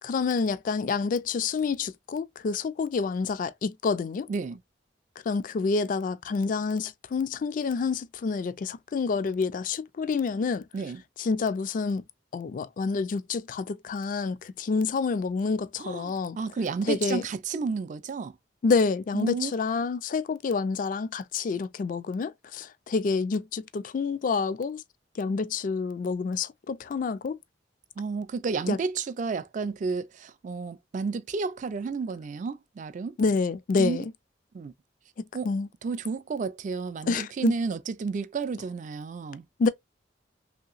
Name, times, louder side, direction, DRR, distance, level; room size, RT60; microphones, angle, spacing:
voice 1, 0.0-4.3 5.3-10.6 11.2-12.0 12.3-16.4 16.9-17.2 18.6-24.8 25.2-27.4 28.7-28.8 33.2-34.1 35.4-35.7 37.1-37.5 39.6-39.7, left 4 dB, 45° left, 0.3 m, -28 dB
voice 2, 4.3-4.6 10.7-11.0 15.8-18.4 19.1-19.5 28.0-33.2 33.8-34.0 34.5-34.7 35.3-35.5 35.8-39.5, right 4 dB, 40° right, 0.3 m, -31 dB
3.1 x 2.8 x 2.4 m
head